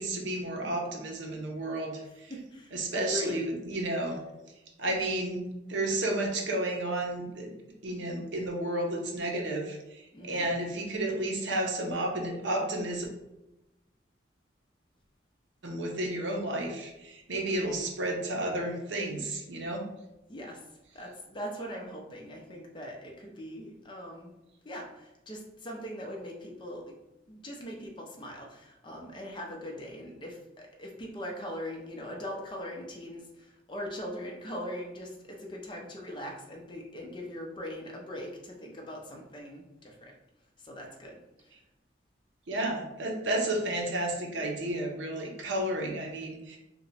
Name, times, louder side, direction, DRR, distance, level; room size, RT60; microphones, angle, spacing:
voice 1, 0.0-2.3 2.7-4.2 4.8-7.5 7.8-13.1 15.6-19.8 42.5-46.6, right 1 dB, 80° right, 1 dB, 0.7 m, -32 dB
voice 2, 2.0-3.4 10.1-10.6 20.3-20.6 20.9-24.3 24.6-26.9 27.3-40.1 40.6-41.5, equal, 25° left, 0 dB, 0.5 m, -41 dB
2.8 x 2.2 x 4.0 m, 0.94 s
head